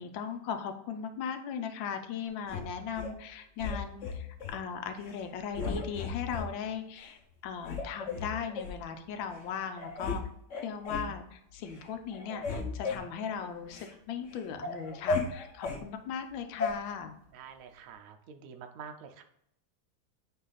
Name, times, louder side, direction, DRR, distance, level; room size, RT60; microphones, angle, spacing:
voice 1, 0.0-7.2 7.4-10.2 10.6-17.2, left 7 dB, 70° left, 7 dB, 1.4 m, -38 dB
sound 1, 2.5-3.1 3.6-4.6 5.0-5.2 5.5-6.5 7.0-7.1 7.6-8.8 9.4-9.5 9.8-10.2 10.5-11.1 11.6-11.9 12.1-13.9 14.3-15.8 16.6-16.7, left 4 dB, 50° left, 1.0 m, -35 dB
voice 2, 17.3-19.2, right 6 dB, 65° right, 5 dB, 0.8 m, -47 dB
9.5 x 3.4 x 4.0 m, 0.74 s
omnidirectional pair, 2.3 m